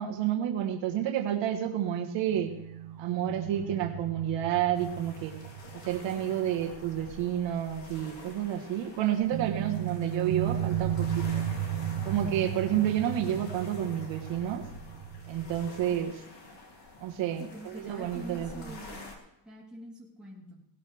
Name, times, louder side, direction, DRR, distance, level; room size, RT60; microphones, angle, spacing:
voice 1, 0.0-2.5 3.0-5.3 5.7-11.5 12.0-14.7 15.3-16.2 17.0-18.8, right 10 dB, 75° right, 3 dB, 1.4 m, -30 dB
sound 1, 2.3-7.7 8.0-8.1 9.3-15.9, right 10 dB, 50° right, 1.5 m, -35 dB
sound 2, 4.7-19.2, left 3 dB, 65° left, 3.0 m, -48 dB
voice 2, 17.4-19.1 19.4-20.7, right 1 dB, ahead, -6 dB, 3.4 m, -46 dB
17.5 x 12.5 x 3.5 m, 0.87 s
cardioid pair, 160°, 45 cm